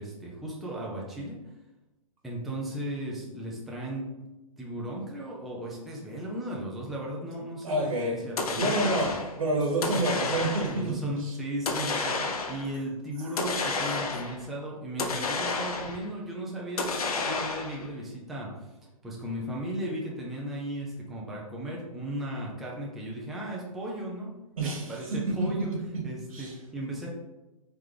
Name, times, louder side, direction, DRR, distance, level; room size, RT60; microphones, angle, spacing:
voice 1, 0.0-1.4 2.2-4.1 4.6-9.0 9.5-10.2 10.7-18.7 19.0-24.3 24.6-25.7 26.0-27.2, right 1 dB, ahead, -4 dB, 0.4 m, -36 dB
voice 2, 7.6-8.2 8.5-10.9 11.2-11.3 24.6-25.0 25.4-25.5 26.3-26.5, right 1 dB, 75° right, -2 dB, 1.2 m, -28 dB
sound 1, 8.4-9.3 9.8-10.9 11.7-12.7 13.4-14.4 15.0-16.1 16.8-17.9, left 3 dB, 90° left, 0.7 m, -30 dB
3.8 x 3.1 x 3.3 m, 1.0 s
hypercardioid pair, 145°, 18 cm